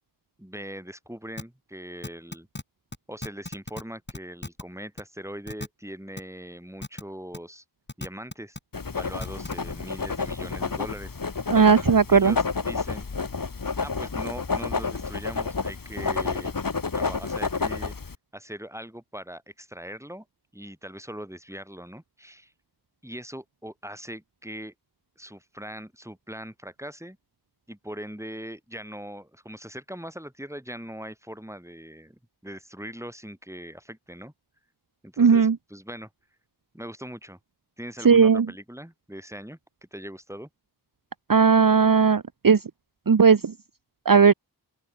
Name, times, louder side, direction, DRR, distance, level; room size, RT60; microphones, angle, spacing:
voice 1, 0.4-2.5 3.1-7.6 8.0-8.6 8.9-11.2 11.6-13.1 13.8-16.6 16.9-17.9 18.3-20.3 20.5-22.5 23.0-24.7 25.2-27.2 27.7-34.3 35.0-36.1 36.7-37.4 37.8-39.6 39.9-40.5, equal, 5° right, 3.8 m, -40 dB
sound 1, 1.4-1.5 2.0-2.6 2.9-3.0 3.2-3.8 4.1-4.6 5.0-5.1 5.5-5.7 6.2-6.3 6.8-7.0 7.3-7.4 7.9-8.6 9.2-9.5, left 2 dB, 25° left, 2.3 m, -35 dB
Writing, 8.7-18.1, left 4 dB, 55° left, 1.2 m, -30 dB
voice 2, 11.5-12.3 35.2-35.6 38.0-38.5 41.3-42.6 43.1-43.5 44.1-44.3, right 6 dB, 50° right, 0.8 m, -17 dB
open air
wide cardioid pair, 45°, 42 cm